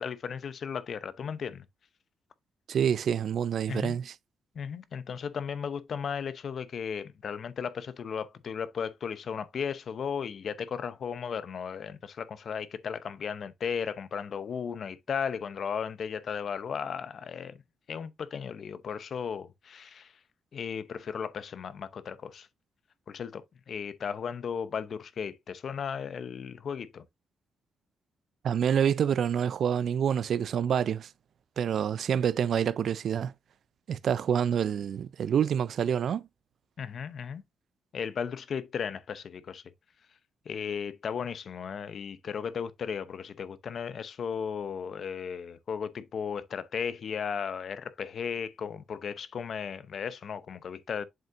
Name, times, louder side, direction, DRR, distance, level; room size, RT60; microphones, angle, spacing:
voice 1, 0.0-1.6 3.7-4.0 4.5-17.6 17.9-20.1 20.5-22.5 23.1-27.0 36.8-37.4 37.9-39.6 40.5-51.0, left 7 dB, 60° left, 0.7 m, -35 dB
voice 2, 2.7-4.1 28.4-31.1 31.6-33.3 33.9-36.3, right 8 dB, 70° right, 0.4 m, -27 dB
7.4 x 5.5 x 2.6 m
cardioid pair, 95°, 0 cm